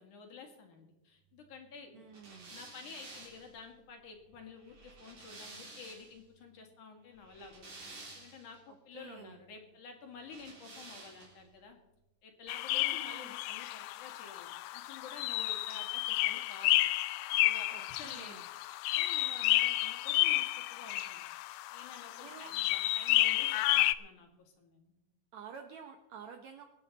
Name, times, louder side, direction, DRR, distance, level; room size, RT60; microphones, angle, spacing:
voice 1, 0.0-2.1 2.5-7.7 8.2-11.8 12.2-16.8 17.4-18.4 18.9-21.2 21.7-25.0, left 5 dB, 60° left, 3 dB, 3.2 m, -51 dB
voice 2, 1.9-2.6 8.7-9.4 12.7-13.3 17.7-18.4 22.2-22.5 25.3-26.6, right 7 dB, 70° right, 6 dB, 1.7 m, -50 dB
sound 1, 2.1-6.2 7.2-8.6 10.2-11.5, right 3 dB, 55° right, 5.1 m, -51 dB
sound 2, 12.5-23.9, left 17 dB, 90° left, 1.8 m, -31 dB
24.0 x 9.1 x 4.0 m, 1.0 s
omnidirectional pair, 4.3 m